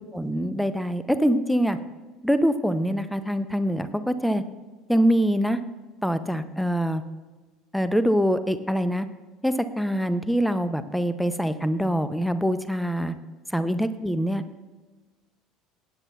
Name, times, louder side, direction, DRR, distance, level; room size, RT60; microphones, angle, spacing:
voice 1, 0.0-1.8 2.2-4.4 4.9-5.6 6.0-7.0 7.7-9.1 9.4-13.1 13.5-14.4, equal, ahead, 12 dB, 0.6 m, -24 dB
17.0 x 8.9 x 2.4 m, 1.3 s
figure-of-eight pair, 65°, 0 cm